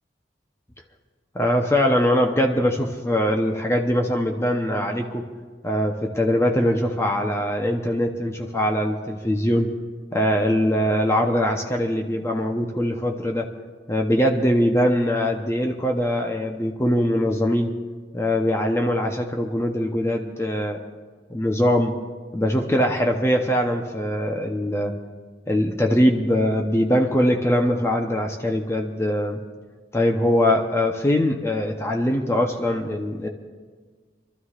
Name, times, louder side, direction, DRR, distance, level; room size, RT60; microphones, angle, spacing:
voice 1, 1.3-5.3 5.6-9.7 10.1-13.5 13.9-17.7 18.1-20.8 21.3-22.0 22.3-24.9 25.5-29.4 29.9-33.3, equal, 15° left, 2 dB, 0.8 m, -22 dB
28.0 x 13.0 x 2.5 m, 1.4 s
head